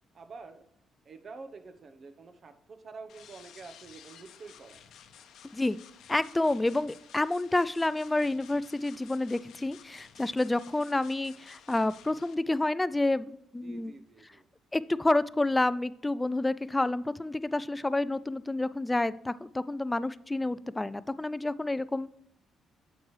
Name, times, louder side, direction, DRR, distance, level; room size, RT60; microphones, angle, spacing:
voice 1, 0.1-0.7 1.0-4.9 13.6-14.5, right 4 dB, 50° right, 9 dB, 0.9 m, -48 dB
sound 1, 3.1-12.3, left 8 dB, 75° left, 0.8 m, -54 dB
voice 2, 5.4-5.8 6.1-13.9 14.7-22.1, left 2 dB, 15° left, 17 dB, 0.3 m, -29 dB
9.1 x 7.3 x 3.2 m, 0.76 s
cardioid pair, 90°, 0 cm